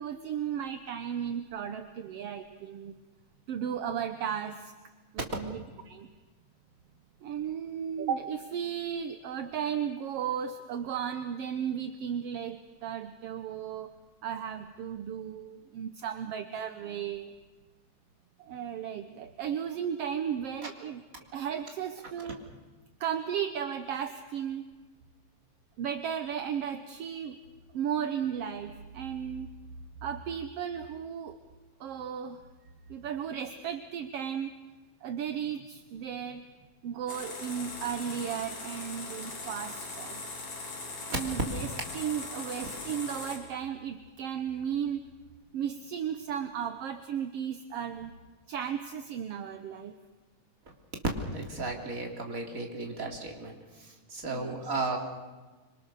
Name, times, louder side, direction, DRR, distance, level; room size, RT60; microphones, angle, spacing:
voice 1, 0.0-3.0 3.5-4.7 5.1-6.1 7.2-14.0 14.2-17.3 18.4-21.0 21.3-22.4 23.0-24.6 25.8-27.4 27.7-29.5 30.0-31.4 31.8-32.4 32.9-34.5 35.0-36.5 36.8-40.2 41.1-45.1 45.5-48.1 48.5-49.9 54.2-54.6, right 8 dB, 65° right, 8 dB, 1.7 m, -35 dB
sound 1, 37.1-43.4, left 3 dB, 60° left, 5.3 m, -40 dB
voice 2, 51.3-53.6 54.1-55.0, right 3 dB, 25° right, 1 dB, 3.6 m, -35 dB
26.0 x 25.5 x 6.6 m, 1.3 s
omnidirectional pair, 3.6 m